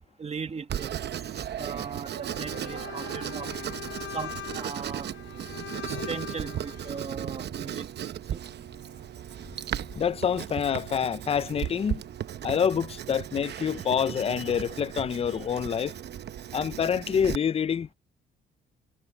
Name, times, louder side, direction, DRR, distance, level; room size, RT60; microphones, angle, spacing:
voice 1, 0.2-0.9 1.4-3.5 4.1-5.1 5.8-7.9 8.3-8.4, right 5 dB, 30° right, 1.6 m, -38 dB
Writing, 0.7-17.4, right 10 dB, 60° right, 0.9 m, -36 dB
Bowed string instrument, 2.3-7.0, left 13 dB, 80° left, 5.7 m, -41 dB
voice 2, 9.9-12.0 12.4-15.9 16.5-17.9, left 7 dB, 30° left, 0.5 m, -27 dB
cardioid pair, 90°, 20 cm